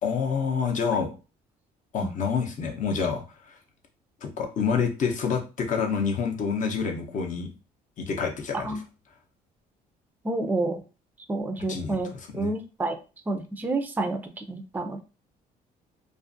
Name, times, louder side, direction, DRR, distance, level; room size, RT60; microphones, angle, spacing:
voice 1, 0.0-1.2 1.9-3.6 4.2-7.5 8.0-8.8 11.7-12.5, left 6 dB, 50° left, 0.7 m, -28 dB
voice 2, 10.2-10.8 11.3-12.1 12.3-13.0 13.3-15.0, right 2 dB, 10° right, 0.3 m, -29 dB
2.4 x 2.4 x 2.5 m
cardioid pair, 110°, 17 cm